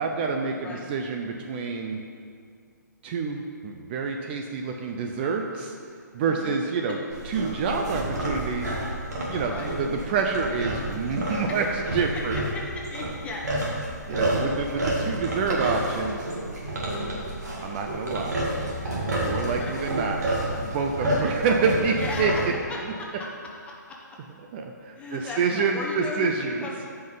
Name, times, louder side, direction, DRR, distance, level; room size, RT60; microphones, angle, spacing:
voice 1, 0.0-2.0 3.0-5.7 6.1-7.0 7.3-8.7 9.3-11.6 11.9-12.3 14.1-16.2 17.6-18.4 19.1-20.2 20.6-22.3 24.5-26.6, right 5 dB, 35° right, 3 dB, 0.6 m, -27 dB
voice 2, 6.2-7.0 9.4-9.8 11.5-11.7 12.0-13.5 13.8-14.0 16.9-17.3 19.5-19.7 22.0-22.4 22.7-24.0 24.9-27.0, left 2 dB, 10° left, -2 dB, 1.2 m, -37 dB
sound 1, 7.1-22.5, right 1 dB, 60° right, 2.4 m, -29 dB
13.5 x 5.5 x 4.0 m, 2.2 s
figure-of-eight pair, 135°, 10 cm